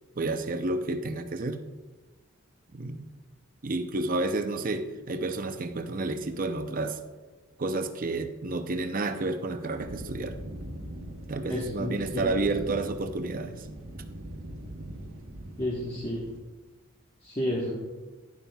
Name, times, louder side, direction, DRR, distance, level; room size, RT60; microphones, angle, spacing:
voice 1, 0.2-1.6 2.7-3.1 3.6-7.0 7.6-10.4 11.3-13.7, right 2 dB, 40° right, 8 dB, 0.6 m, -30 dB
sound 1, 9.8-16.4, right 1 dB, 70° right, 1.2 m, -41 dB
voice 2, 11.5-12.2 15.6-16.2 17.2-17.7, left 1 dB, 25° left, -4 dB, 1.2 m, -31 dB
11.0 x 10.5 x 2.3 m, 1.3 s
head